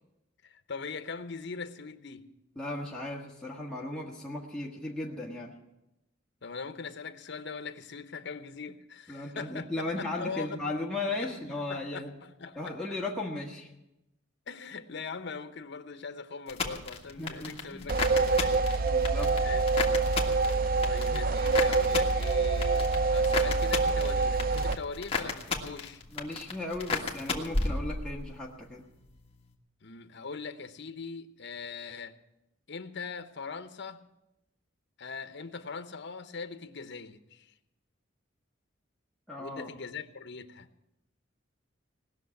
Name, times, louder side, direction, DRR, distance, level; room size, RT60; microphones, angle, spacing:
voice 1, 0.4-2.3 6.4-10.6 11.2-12.8 14.5-18.9 19.4-19.6 20.8-26.0 29.8-32.2 32.7-34.1 35.0-37.6 39.4-40.7, left 5 dB, 65° left, 0.9 m, -41 dB
voice 2, 2.5-5.6 9.1-12.1 12.5-13.8 17.1-17.8 18.9-19.4 26.1-28.9 39.3-39.7, left 2 dB, 5° left, 1.5 m, -36 dB
sound 1, 16.5-28.4 28.7-29.3, left 4 dB, 30° left, 1.7 m, -35 dB
sound 2, 17.9-24.8, right 3 dB, 50° right, 0.4 m, -26 dB
18.5 x 6.6 x 9.7 m
head